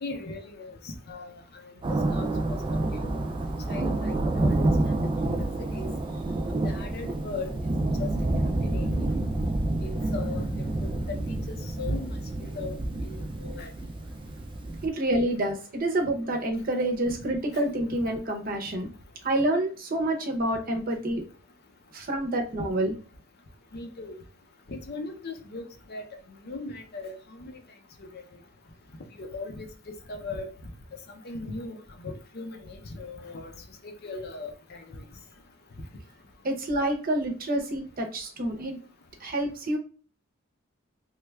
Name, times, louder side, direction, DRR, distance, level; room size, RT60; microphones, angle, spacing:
voice 1, 0.0-1.3 2.1-2.3 2.7-3.1 3.7-4.6 5.2-5.4 5.7-5.9 6.6-7.5 8.0-8.1 8.7-8.9 9.8-10.5 10.8-12.2 12.5-12.8 13.0-13.7 23.7-24.2 24.7-26.1 26.4-27.5 28.0-28.1 29.2-30.5 31.2-31.8 32.0-33.5 33.8-35.0, left 3 dB, 50° left, 0.6 m, -38 dB
Thunder, 1.8-14.9, right 2 dB, 25° right, 0.3 m, -28 dB
voice 2, 14.8-18.9 19.2-21.2 21.9-23.0 36.4-38.8 39.2-39.8, right 1 dB, 45° right, 0.7 m, -28 dB
3.2 x 2.3 x 3.2 m
head